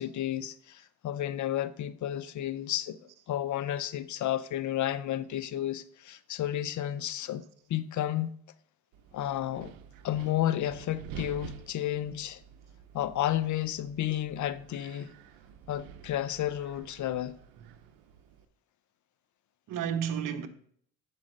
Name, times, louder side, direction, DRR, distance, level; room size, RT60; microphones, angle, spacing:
voice 1, 0.0-3.0 3.3-7.4 7.7-8.3 9.1-9.7 10.0-12.4 12.9-15.1 15.7-17.4, left 12 dB, 55° left, 0.7 m, -32 dB
voice 2, 2.3-3.2 5.4-5.7 6.1-6.2 6.9-7.4 17.6-17.8 19.7-20.5, right 8 dB, 60° right, 1.2 m, -37 dB
Wind, 8.9-18.5, right 8 dB, 85° right, 0.8 m, -49 dB
7.4 x 5.4 x 6.5 m
supercardioid pair, 80°, 35 cm